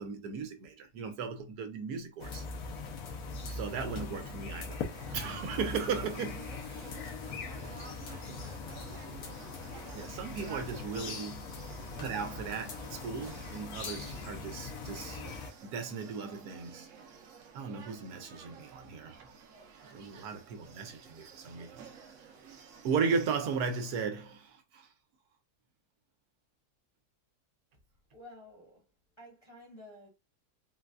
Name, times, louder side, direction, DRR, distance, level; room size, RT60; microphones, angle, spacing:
voice 1, 0.0-2.4 3.5-4.8 5.1-7.0 7.6-7.8 8.3-8.5 9.9-11.5 12.0-15.2 15.6-16.9 17.5-19.3 19.9-21.9 22.8-24.9, right 5 dB, 80° right, 1.2 m, -36 dB
sound 1, 2.2-15.5, left 4 dB, 70° left, 1.2 m, -41 dB
sound 2, 4.9-24.0, right 6 dB, 65° right, 0.8 m, -52 dB
voice 2, 28.1-28.8 29.2-30.1, left 1 dB, 20° left, 0.9 m, -52 dB
3.9 x 2.3 x 2.2 m
omnidirectional pair, 1.7 m